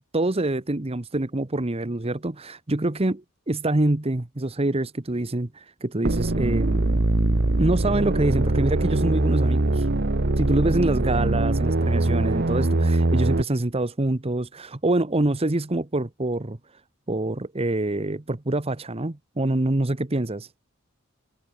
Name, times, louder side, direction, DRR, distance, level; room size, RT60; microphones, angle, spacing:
voice 1, 0.1-7.0 7.6-9.9 10.4-16.6 17.1-20.5, right 2 dB, 25° right, 1.0 m, -25 dB
sound 1, 6.0-13.4, right 2 dB, 50° right, 1.1 m, -22 dB
head